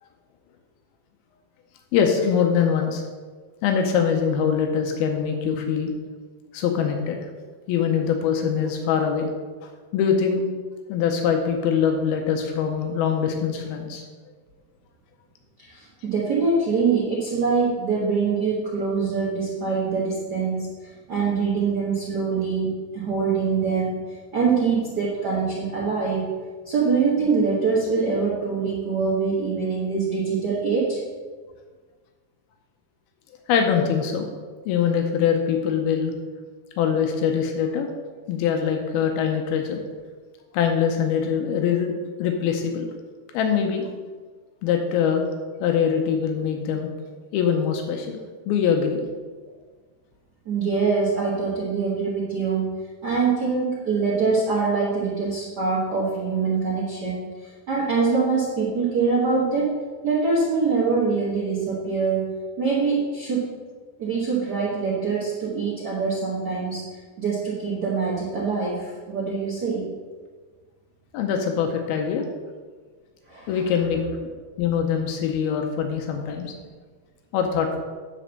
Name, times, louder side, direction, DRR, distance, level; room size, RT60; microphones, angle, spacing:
voice 1, 1.9-3.0 3.6-5.9 6.5-7.3 7.7-9.3 9.6-10.4 10.9-14.0 33.5-34.3 34.7-36.1 36.8-37.9 38.3-39.8 40.5-41.9 42.2-42.9 43.3-43.9 44.6-45.3 45.6-46.9 47.3-48.2 48.5-49.0 71.1-72.3 73.5-74.3 74.6-76.5 77.3-77.8, left 7 dB, 85° left, 3 dB, 2.7 m, -23 dB
voice 2, 15.6-26.3 26.6-31.0 50.4-59.7 60.0-63.5 64.0-66.8 67.2-69.9 73.3-73.6, right 4 dB, 65° right, -6 dB, 1.0 m, -24 dB
10.0 x 4.4 x 6.5 m, 1.4 s
omnidirectional pair, 4.3 m